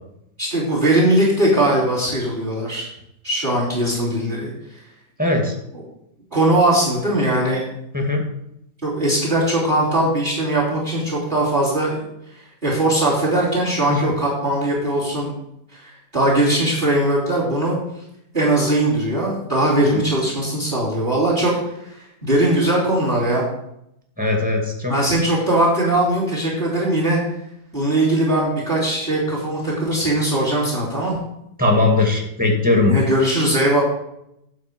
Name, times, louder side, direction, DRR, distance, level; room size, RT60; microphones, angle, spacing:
voice 1, 0.4-2.9 3.2-4.5 6.3-7.6 8.8-12.0 12.6-15.3 15.7-17.8 18.3-21.5 21.8-21.9 22.2-23.4 24.9-27.2 27.7-31.2 32.8-33.8, right 1 dB, 25° right, -4 dB, 3.3 m, -20 dB
voice 2, 5.2-5.5 7.9-8.2 13.9-14.1 19.9-20.0 24.2-24.9 31.6-32.9, left 2 dB, 5° right, 1 dB, 2.1 m, -19 dB
12.0 x 4.5 x 8.2 m, 0.80 s
omnidirectional pair, 1.8 m